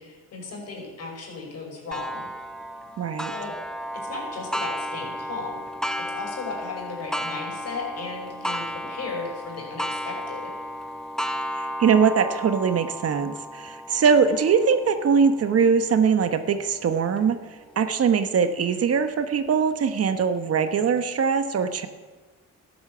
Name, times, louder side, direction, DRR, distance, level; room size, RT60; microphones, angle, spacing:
voice 1, 0.0-2.3 3.3-3.6 3.9-5.6 6.0-10.5, left 4 dB, 55° left, 0 dB, 5.7 m, -36 dB
Clock, 1.9-17.2 17.8-17.9 18.4-18.5 19.5-19.6, equal, ahead, 0.9 m, -34 dB
voice 2, 3.0-3.3 11.5-17.4 17.8-21.9, right 6 dB, 50° right, 9 dB, 1.2 m, -22 dB
13.0 x 10.5 x 7.8 m, 1.3 s
cardioid pair, 90°, 30 cm